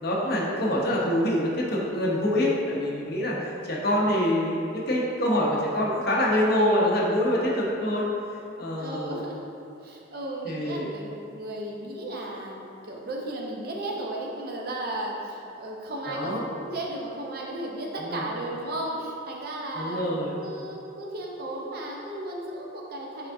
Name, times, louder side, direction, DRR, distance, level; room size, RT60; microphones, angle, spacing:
voice 1, 0.0-8.0 8.6-9.2 10.5-10.9 16.1-16.4 18.0-18.2 19.8-20.3, left 1 dB, 50° left, -4 dB, 0.7 m, -25 dB
voice 2, 8.8-9.5 9.8-23.3, right 1 dB, 50° right, -1 dB, 0.5 m, -35 dB
4.6 x 3.5 x 2.6 m, 2.7 s
head